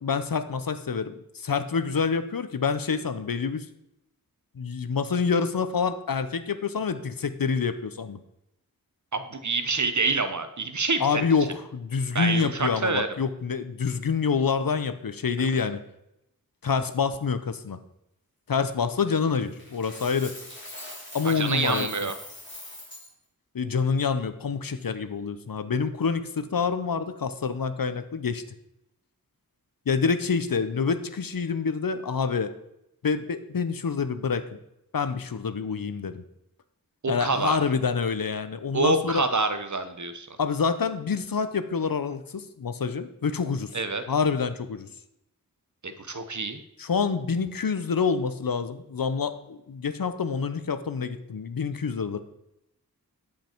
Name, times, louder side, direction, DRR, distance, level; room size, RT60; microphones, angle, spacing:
voice 1, 0.0-3.6 4.6-8.2 11.0-15.8 16.6-17.8 18.5-20.4 21.1-22.1 23.5-28.4 29.9-32.5 33.0-34.6 34.9-36.2 37.1-39.2 40.4-43.8 44.1-44.9 46.8-52.2, left 5 dB, 70° left, 11 dB, 0.8 m, -27 dB
voice 2, 9.1-11.0 12.1-13.1 15.5-15.6 21.2-22.1 37.0-37.6 38.7-40.3 43.7-44.0 45.8-46.6, right 3 dB, 55° right, 9 dB, 0.9 m, -26 dB
Coin (dropping), 19.6-23.1, left 1 dB, 30° left, 3.9 m, -42 dB
13.0 x 5.3 x 4.5 m, 0.82 s
wide cardioid pair, 50°, 36 cm